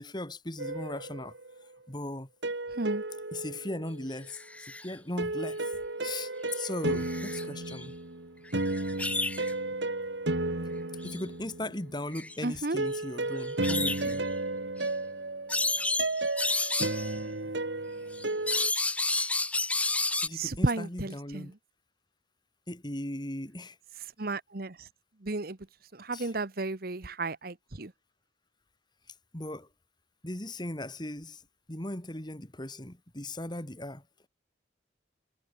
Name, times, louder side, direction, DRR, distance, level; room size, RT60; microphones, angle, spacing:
voice 1, 0.0-1.3 1.9-2.3 3.3-5.6 6.0-7.9 11.0-14.2 18.5-18.6 20.2-21.5 22.7-23.8 26.1-26.4 29.3-29.7 30.2-31.4 31.7-34.0, left 1 dB, 25° left, 2.7 m, -38 dB
sound 1, 0.6-1.6 2.4-4.3 5.2-11.9 12.8-18.7, right 2 dB, 70° right, 2.3 m, -33 dB
sound 2, 4.3-4.9 6.5-6.6 6.9-7.8 8.5-9.5 11.0-11.2 12.1-12.4 13.4-14.2 14.8-14.9 15.5-17.2 18.1-20.3, left 2 dB, 5° left, 0.6 m, -31 dB
voice 2, 12.4-12.8 20.3-21.5 24.2-24.8 25.2-25.6 25.9-27.9, right 2 dB, 55° right, 1.2 m, -33 dB
head